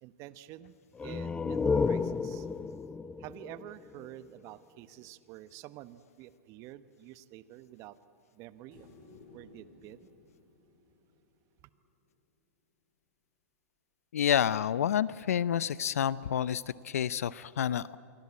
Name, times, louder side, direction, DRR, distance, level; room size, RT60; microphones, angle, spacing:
voice 1, 0.0-2.5 3.2-8.0 8.3-8.9 9.3-10.1, right 14 dB, 40° right, 14 dB, 1.1 m, -48 dB
sound 1, 0.9-4.5, left 4 dB, 10° left, 0.6 m, -32 dB
sound 2, 8.7-12.0 14.6-14.7, left 3 dB, 40° left, 7.4 m, -58 dB
voice 2, 14.1-18.0, left 9 dB, 70° left, 18 dB, 0.6 m, -29 dB
27.5 x 23.5 x 8.5 m, 2.3 s
hypercardioid pair, 115°, 8 cm